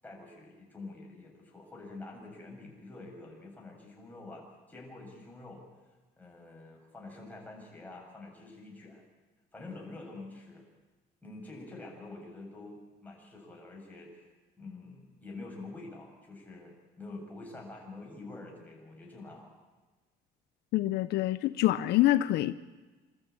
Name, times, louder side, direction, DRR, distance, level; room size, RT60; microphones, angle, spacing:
voice 1, 0.0-5.6 6.2-9.0 9.5-10.6 11.2-14.3 14.6-19.5, left 2 dB, 10° left, 7.8 m, -47 dB
voice 2, 20.7-22.6, left 15 dB, 75° left, 0.7 m, -26 dB
28.0 x 13.5 x 8.8 m
cardioid pair, 110°, 17 cm